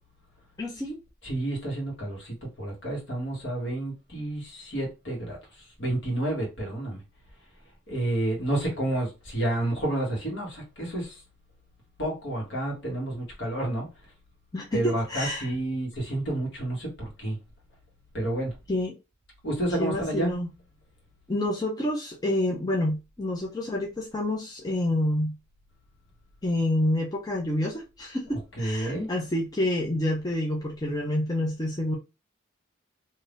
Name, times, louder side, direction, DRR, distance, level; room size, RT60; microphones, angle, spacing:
voice 1, 0.6-1.0 14.5-15.5 18.7-18.9 19.8-20.5 21.3-25.4 26.4-32.0, left 1 dB, 20° left, 0.6 m, -28 dB
voice 2, 1.2-7.0 7.9-11.2 12.0-14.1 14.7-17.4 18.1-18.5 19.4-20.3 28.3-29.1, right 1 dB, 65° left, 1.4 m, -30 dB
3.4 x 2.7 x 2.5 m
head